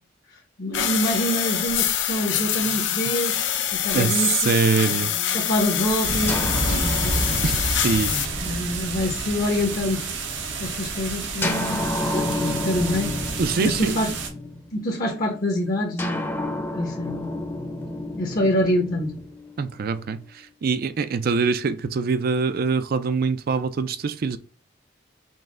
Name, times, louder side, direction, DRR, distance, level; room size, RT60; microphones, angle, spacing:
voice 1, 0.3-3.4 3.7-4.5 5.3-6.4 6.6-7.6 8.1-10.0 10.6-13.2 13.6-14.1 14.7-16.3 16.7-17.3 18.2-19.1, left 1 dB, 50° left, 0.8 m, -26 dB
sound 1, 0.7-8.3, left 10 dB, 80° left, 0.6 m, -25 dB
voice 2, 3.9-5.1 6.7-6.8 7.4-7.6 7.8-8.1 13.4-14.0 19.6-20.2 20.6-24.4, right 5 dB, 55° right, 0.4 m, -23 dB
sound 2, 6.0-14.3, right 3 dB, 85° right, 1.0 m, -29 dB
sound 3, 6.3-10.1 11.4-15.0 16.0-20.1, left 1 dB, 10° left, 0.6 m, -31 dB
5.4 x 2.1 x 3.7 m
head